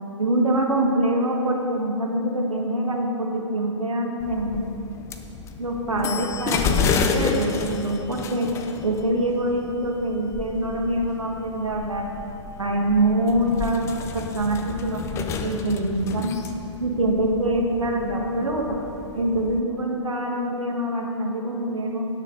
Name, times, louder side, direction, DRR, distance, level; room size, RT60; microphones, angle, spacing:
voice 1, 0.2-4.7 5.6-8.5 8.8-12.0 12.6-13.8 14.1-16.3 16.8-18.8 19.1-22.1, right 1 dB, 85° right, 1 dB, 1.7 m, -24 dB
sound 1, 4.2-19.6, left 5 dB, 15° left, 0.5 m, -31 dB
17.5 x 6.5 x 3.9 m, 2.7 s
figure-of-eight pair, 120°, 16 cm